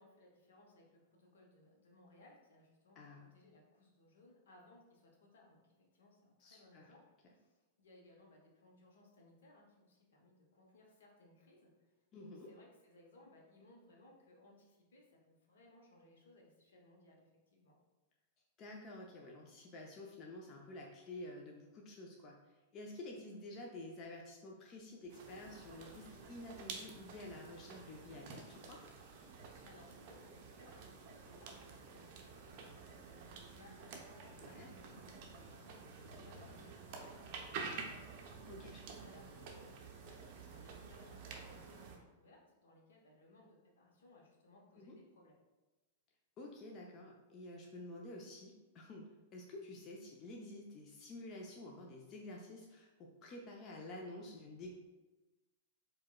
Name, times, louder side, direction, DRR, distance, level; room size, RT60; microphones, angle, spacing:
voice 1, 0.0-17.8 29.6-38.1 38.4-38.5 38.9-45.3, left 2 dB, 70° left, -1 dB, 0.7 m, -64 dB
voice 2, 3.0-3.3 6.4-6.9 12.1-12.5 18.6-28.8 34.4-34.7 38.5-38.8 44.8-45.0 46.4-54.7, left 2 dB, 35° left, -1 dB, 0.4 m, -50 dB
sound 1, 25.1-42.0, right 4 dB, 50° right, 0.5 m, -50 dB
4.4 x 2.1 x 2.2 m, 1.1 s
figure-of-eight pair, 100°, 0 cm